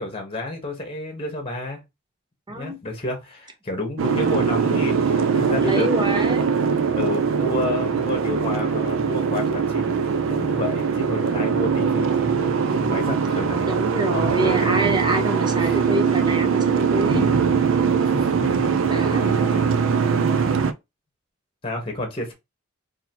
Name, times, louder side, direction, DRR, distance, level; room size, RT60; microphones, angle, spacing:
voice 1, 0.0-1.8 2.5-6.1 6.9-10.0 10.3-14.8 15.6-15.8 17.8-19.7 21.6-22.3, left 2 dB, 25° left, 1.1 m, -30 dB
voice 2, 2.5-2.8 5.6-6.5 13.7-17.3 18.9-19.3, right 1 dB, 20° right, 0.7 m, -26 dB
Boat Water vehicle, 4.0-20.7, right 6 dB, 70° right, 0.4 m, -21 dB
2.8 x 2.8 x 4.2 m
head